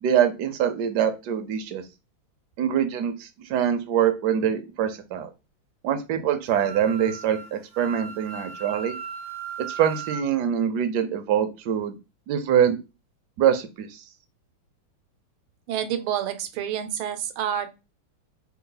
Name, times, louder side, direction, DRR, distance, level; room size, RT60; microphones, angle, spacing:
voice 1, 0.0-1.8 2.6-5.3 5.8-9.0 9.6-12.0 12.3-12.8 13.4-14.0, right 9 dB, 70° right, 8 dB, 1.0 m, -24 dB
Wind instrument woodwind instrument, 6.5-10.2, right 7 dB, 10° left, 0.3 m, -37 dB
voice 2, 15.7-17.7, right 9 dB, 85° right, 10 dB, 1.5 m, -28 dB
3.5 x 3.0 x 3.8 m, 0.27 s
omnidirectional pair, 2.3 m